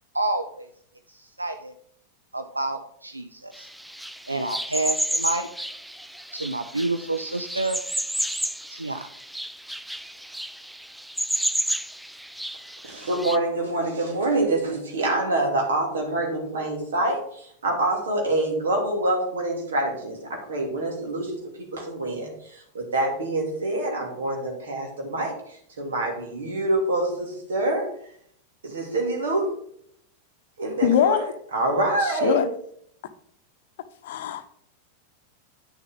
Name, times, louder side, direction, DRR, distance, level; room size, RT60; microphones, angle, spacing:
voice 1, 0.1-0.7 1.1-1.7 2.3-3.7 4.3-5.5 6.3-7.8 8.7-9.0, right 2 dB, 85° right, 7 dB, 0.5 m, -28 dB
sound 1, 3.5-13.4, right 1 dB, ahead, 0.3 m, -31 dB
voice 2, 12.8-27.9 28.6-29.5 30.6-31.2 31.5-32.4, right 2 dB, 65° right, 1 dB, 2.6 m, -26 dB
voice 3, 30.8-31.3 32.0-32.5 34.0-34.5, left 9 dB, 55° left, 10 dB, 0.8 m, -23 dB
9.9 x 6.5 x 3.8 m, 0.65 s
figure-of-eight pair, 90°, 0 cm